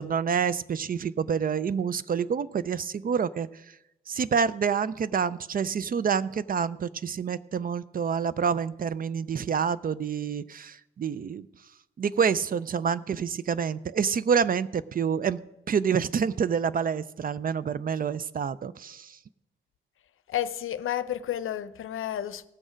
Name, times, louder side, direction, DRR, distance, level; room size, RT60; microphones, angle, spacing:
voice 1, 0.0-3.5 4.1-11.5 12.0-15.4 15.7-19.2, right 6 dB, 45° right, 17 dB, 0.4 m, -27 dB
voice 2, 20.3-22.4, left 11 dB, 75° left, 14 dB, 0.6 m, -31 dB
17.0 x 6.3 x 5.1 m, 0.92 s
cardioid pair, 95°, 21 cm